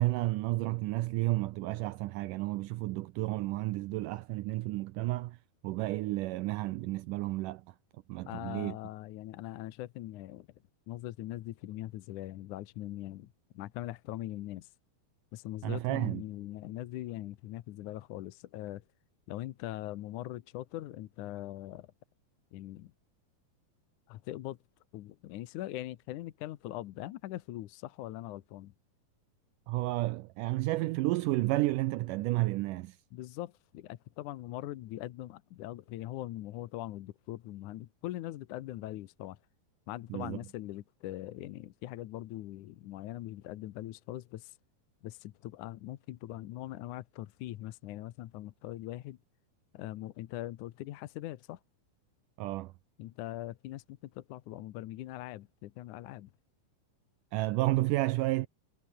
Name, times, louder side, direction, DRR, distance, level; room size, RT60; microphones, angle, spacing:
voice 1, 0.0-5.4 5.6-7.8 8.1-8.8 15.6-16.2 29.7-33.0 40.1-40.4 52.4-52.7 57.3-58.5, right 18 dB, 90° right, 1.8 m, -31 dB
voice 2, 8.3-10.5 10.9-13.3 13.5-14.7 15.3-18.8 19.3-21.9 22.5-22.9 24.1-24.6 24.9-28.7 33.1-39.4 39.9-44.6 45.0-49.2 49.7-51.6 53.0-56.3, left 15 dB, 75° left, 2.0 m, -41 dB
omnidirectional pair, 4.5 m